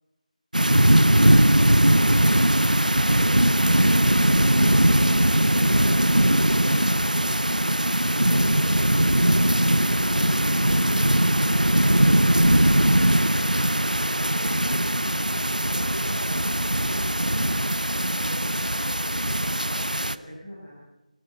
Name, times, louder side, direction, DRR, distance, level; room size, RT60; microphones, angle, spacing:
sound 1, 0.5-20.2, right 1 dB, 80° right, 0.9 m, -20 dB
voice 1, 0.7-7.4 8.3-10.1 10.7-11.8 12.1-14.9 15.4-17.6 18.1-20.8, equal, 10° left, -9 dB, 6.2 m, -42 dB
20.5 x 19.0 x 8.0 m, 1.0 s
figure-of-eight pair, 165°, 4 cm